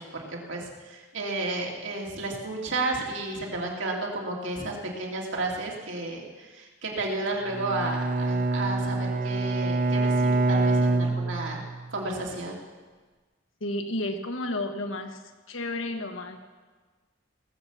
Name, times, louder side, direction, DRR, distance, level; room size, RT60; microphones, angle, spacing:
voice 1, 0.1-11.6 11.9-12.6, right 2 dB, 80° right, -1 dB, 2.6 m, -32 dB
Bowed string instrument, 7.5-11.9, right 2 dB, 45° right, 0.7 m, -25 dB
voice 2, 13.6-15.2 15.5-16.4, left 1 dB, 80° left, 6 dB, 1.3 m, -31 dB
19.0 x 7.1 x 7.1 m, 1.4 s
head